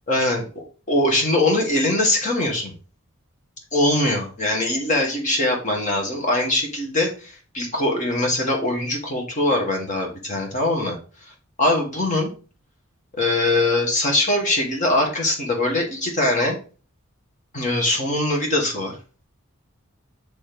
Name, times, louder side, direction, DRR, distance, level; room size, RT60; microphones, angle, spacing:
voice 1, 0.1-2.7 3.7-11.0 11.6-12.3 13.2-16.6 17.5-18.9, left 1 dB, 35° left, 0 dB, 1.9 m, -22 dB
6.9 x 3.3 x 5.2 m, 0.37 s
head